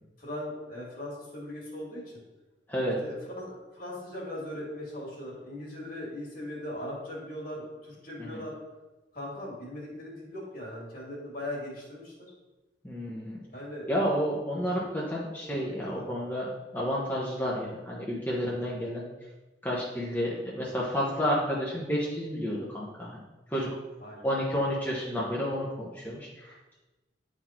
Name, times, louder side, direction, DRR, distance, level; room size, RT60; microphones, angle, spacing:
voice 1, 0.2-2.2 3.0-8.6 9.1-12.1 13.5-13.9 15.3-15.4 15.6-16.1 24.0-24.3, left 1 dB, 50° left, -3 dB, 2.4 m, -39 dB
voice 2, 12.8-13.4 13.9-19.1 19.6-23.2 23.5-23.7 24.2-26.8, equal, 10° left, -6 dB, 1.1 m, -31 dB
9.8 x 4.2 x 4.4 m, 1.1 s
head